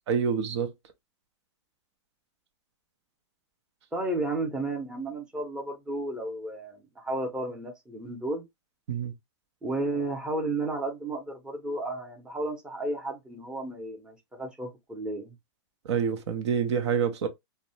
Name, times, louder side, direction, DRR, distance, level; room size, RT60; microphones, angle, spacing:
voice 1, 0.1-0.7 8.9-9.1 15.8-17.3, right 7 dB, 70° right, 0.6 m, -27 dB
voice 2, 3.9-8.4 9.6-15.3, right 2 dB, 5° right, 0.6 m, -33 dB
2.5 x 2.1 x 2.8 m
hypercardioid pair, 145°, 15 cm